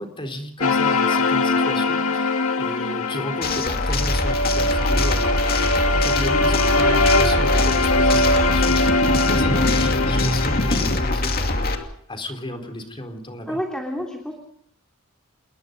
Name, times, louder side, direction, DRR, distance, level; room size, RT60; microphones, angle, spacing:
voice 1, 0.0-13.6, left 1 dB, 25° left, 5 dB, 4.0 m, -33 dB
sound 1, 0.6-11.8, left 2 dB, 75° left, 2.2 m, -22 dB
sound 2, 3.4-11.8, left 2 dB, 45° left, 2.5 m, -22 dB
voice 2, 13.5-14.3, equal, 5° left, 1 dB, 3.1 m, -29 dB
29.0 x 21.0 x 5.3 m, 0.66 s
head